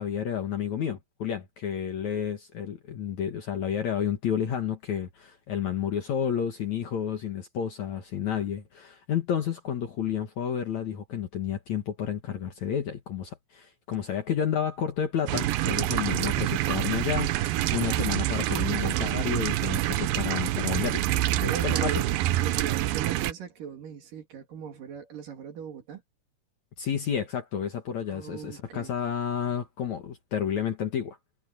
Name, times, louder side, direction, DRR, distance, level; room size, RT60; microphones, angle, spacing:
voice 1, 0.0-21.0 21.4-22.0 26.8-31.2, left 8 dB, 55° left, 2.3 m, -31 dB
sound 1, 15.3-23.3, right 14 dB, 75° right, 2.3 m, -27 dB
voice 2, 21.5-22.2 22.4-26.0 28.1-28.9, right 7 dB, 60° right, 3.7 m, -38 dB
omnidirectional pair, 4.7 m